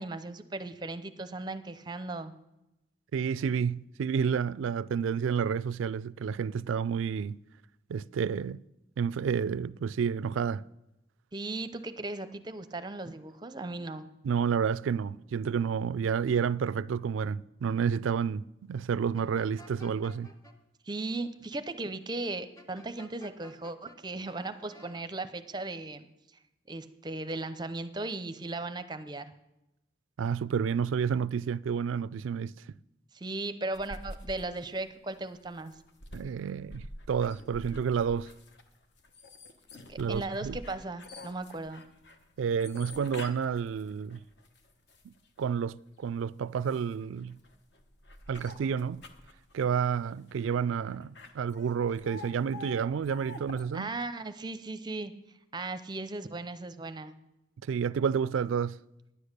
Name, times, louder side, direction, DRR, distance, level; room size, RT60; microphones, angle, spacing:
voice 1, 0.0-2.3 11.3-14.1 20.8-26.1 26.7-29.3 33.1-35.7 39.9-41.8 53.7-55.1 55.5-57.2, right 2 dB, 20° right, 0.5 m, -37 dB
voice 2, 3.1-7.4 7.9-8.6 9.0-10.6 14.2-20.3 30.2-32.5 36.1-38.3 40.0-40.6 42.4-44.2 45.0-47.4 48.3-49.0 49.5-53.9 57.6-58.8, right 7 dB, 85° right, 0.3 m, -30 dB
sound 1, 19.1-20.5 22.6-24.0 24.3-25.0, left 1 dB, 20° left, 0.9 m, -53 dB
sound 2, 33.7-45.5 46.0-53.6, left 1 dB, 60° left, 1.0 m, -47 dB
10.0 x 10.0 x 6.6 m
head